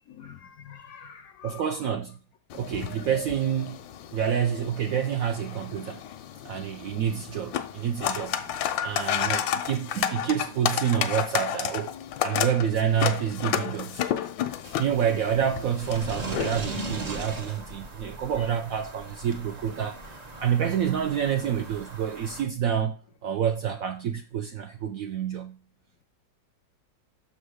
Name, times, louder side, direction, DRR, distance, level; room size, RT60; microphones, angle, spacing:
voice 1, 0.0-1.9 2.7-3.1 18.4-18.6, left 7 dB, 70° left, 0.9 m, -47 dB
voice 2, 1.4-2.2 2.5-3.8 4.1-6.0 6.4-8.4 8.8-11.9 12.2-14.1 14.8-20.0 20.4-25.6, right 8 dB, 70° right, 0.8 m, -28 dB
sound 1, 2.5-17.0, left 10 dB, 90° left, 1.4 m, -32 dB
sound 2, 14.6-22.4, right 2 dB, 40° right, 0.5 m, -39 dB
6.2 x 4.0 x 6.3 m
omnidirectional pair, 2.0 m